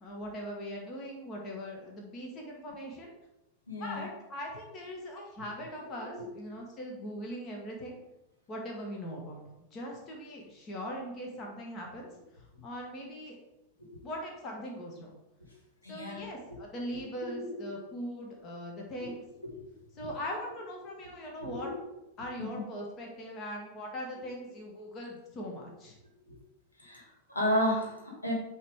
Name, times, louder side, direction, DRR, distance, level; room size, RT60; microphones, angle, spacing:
voice 1, 0.0-3.1 3.7-8.0 8.5-9.4 9.7-13.4 14.0-15.1 15.9-19.2 19.9-21.7 22.2-26.0, equal, 30° left, 0 dB, 1.4 m, -40 dB
voice 2, 3.7-4.0 6.1-6.3 13.8-14.0 15.8-16.3 17.2-17.6 19.0-19.1 19.4-19.5 20.0-20.1 21.4-21.8 22.4-22.5 26.3-26.4 26.8-28.3, equal, 80° left, -2 dB, 1.9 m, -33 dB
8.9 x 3.2 x 3.6 m, 0.89 s
figure-of-eight pair, 90°, 0 cm